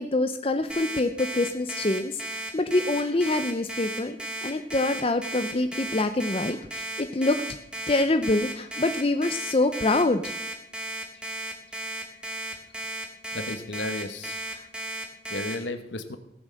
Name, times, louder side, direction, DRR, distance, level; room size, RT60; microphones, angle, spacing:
voice 1, 0.0-4.2 4.4-7.4 7.9-10.3 14.5-14.7, left 2 dB, 30° left, 8 dB, 0.6 m, -25 dB
Alarm, 0.7-15.5, right 1 dB, 5° right, 2.0 m, -34 dB
voice 2, 13.3-14.4 15.3-16.2, left 2 dB, 85° left, 7 dB, 1.2 m, -33 dB
17.5 x 6.3 x 7.7 m, 0.81 s
head